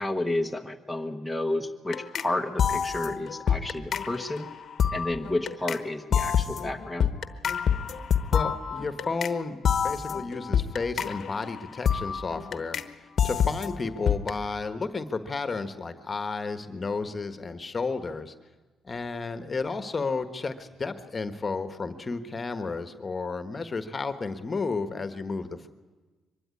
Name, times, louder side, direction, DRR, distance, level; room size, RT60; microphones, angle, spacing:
voice 1, 0.0-4.5 4.9-7.1, left 1 dB, 5° left, 2 dB, 1.1 m, -31 dB
sound 1, 1.9-2.3 2.6-5.8 6.1-9.4 9.6-12.9 13.2-14.4, left 8 dB, 55° left, 1.1 m, -27 dB
voice 2, 8.3-12.8 13.2-18.3 18.8-25.7, left 4 dB, 30° left, 9 dB, 1.3 m, -32 dB
23.5 x 12.5 x 9.7 m, 1.3 s
cardioid pair, 90°, 0 cm